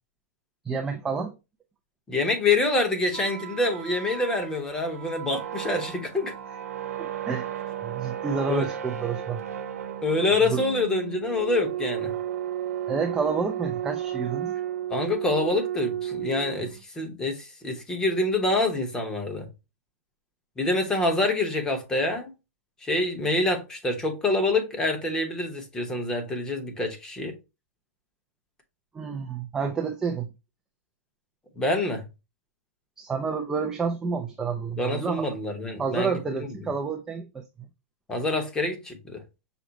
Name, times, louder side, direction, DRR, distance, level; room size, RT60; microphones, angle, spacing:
voice 1, 0.7-1.4 7.0-7.5 7.8-9.4 10.5-10.6 12.9-14.5 28.9-30.3 33.0-35.3 35.8-37.4, right 5 dB, 5° right, 0.3 m, -29 dB
voice 2, 2.1-6.3 8.5-8.7 10.0-12.1 14.9-19.5 20.6-22.3 22.8-27.4 31.6-32.0 34.8-36.5 38.1-39.2, left 2 dB, 10° left, 0.8 m, -26 dB
sound 1, 3.0-16.8, right 10 dB, 90° right, 0.8 m, -33 dB
5.9 x 2.0 x 3.8 m
hypercardioid pair, 160°, 8 cm